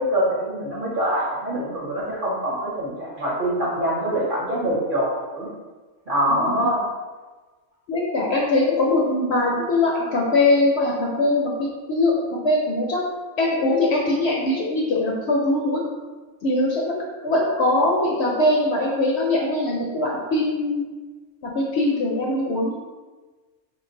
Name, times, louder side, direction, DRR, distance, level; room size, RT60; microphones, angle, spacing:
voice 1, 0.0-5.5 6.1-6.8, equal, 45° right, -6 dB, 0.9 m, -24 dB
voice 2, 6.3-6.7 7.9-13.0 13.4-15.8 16.4-20.8 21.4-22.7, left 2 dB, 65° left, -3 dB, 0.7 m, -22 dB
3.8 x 2.1 x 3.8 m, 1.3 s
omnidirectional pair, 1.5 m